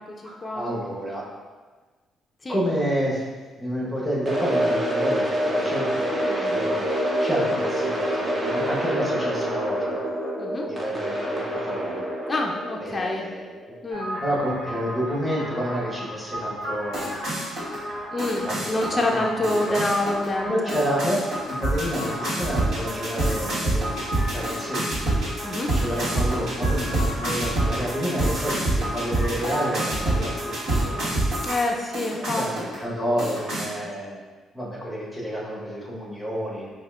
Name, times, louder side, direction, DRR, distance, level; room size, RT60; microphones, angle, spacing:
voice 1, 0.2-1.2 2.5-3.2 3.5-6.9 7.2-10.0 10.7-12.0 12.8-13.5 14.2-17.0 18.4-18.8 19.7-19.9 20.5-21.2 21.5-24.0 24.3-25.0 25.7-31.1 32.1-34.2 34.5-36.7, equal, ahead, -6 dB, 1.1 m, -29 dB
sound 1, 4.2-14.3, equal, 25° right, 0.7 m, -27 dB
voice 2, 6.2-6.5 10.4-10.7 12.3-13.3 13.8-14.2 18.1-20.8 25.4-25.7 31.4-32.5, left 2 dB, 25° left, 0 dB, 0.4 m, -27 dB
sound 2, 13.9-31.6 31.9-32.8 33.2-33.7, right 1 dB, 70° right, 1.4 m, -27 dB
5.3 x 2.4 x 2.4 m, 1.4 s
cardioid pair, 90°, 0 cm